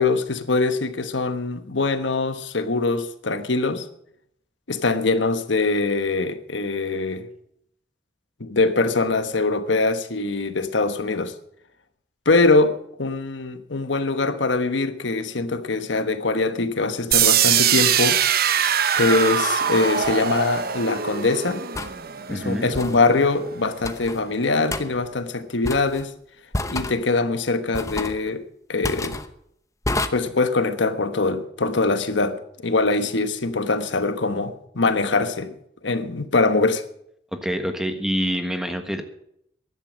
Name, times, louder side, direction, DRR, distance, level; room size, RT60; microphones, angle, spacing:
voice 1, 0.0-3.9 4.7-7.3 8.4-11.3 12.2-18.2 18.9-21.7 22.3-26.1 26.7-28.4 28.7-29.2 30.1-35.5 35.8-36.8, left 3 dB, 85° left, 1.2 m, -23 dB
sound 1, 17.1-23.0, right 9 dB, 55° right, 0.9 m, -22 dB
sound 2, 20.0-20.2 21.7-21.9 22.7-23.0 23.8-24.2 24.7-24.8 25.6-26.0 26.5-27.0 27.7-28.2 28.8-29.3 29.8-30.1, left 2 dB, 15° left, 0.9 m, -28 dB
voice 2, 22.3-22.7 37.3-39.0, equal, 5° right, 1.3 m, -26 dB
13.5 x 11.0 x 6.4 m
head